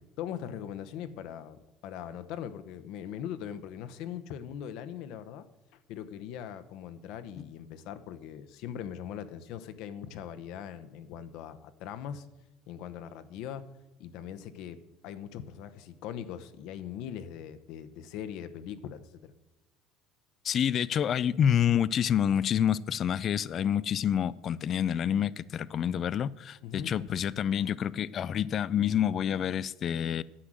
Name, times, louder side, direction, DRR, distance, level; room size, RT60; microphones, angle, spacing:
voice 1, 0.2-5.5 5.7-12.3 12.7-13.6 14.0-14.8 15.0-19.3 26.6-27.2, left 9 dB, 65° left, 0.9 m, -41 dB
voice 2, 20.4-30.2, left 9 dB, 40° left, 0.4 m, -28 dB
10.0 x 7.8 x 7.5 m
cardioid pair, 135°, 0 cm